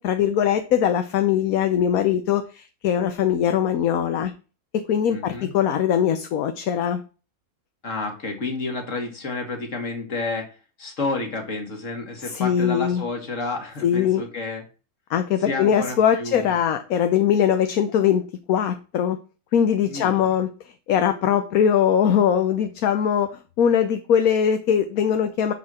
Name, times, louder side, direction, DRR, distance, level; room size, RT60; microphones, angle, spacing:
voice 1, 0.0-4.3 4.7-7.0 12.2-13.0 13.8-14.2 15.1-19.2 19.5-20.5 20.9-23.3 23.6-25.5, left 8 dB, 70° left, 8 dB, 1.2 m, -21 dB
voice 2, 5.1-5.5 7.8-10.5 10.8-14.6 15.5-16.5 19.9-20.3, left 3 dB, 50° left, 3 dB, 2.3 m, -30 dB
8.5 x 4.6 x 6.2 m, 0.34 s
omnidirectional pair, 1.7 m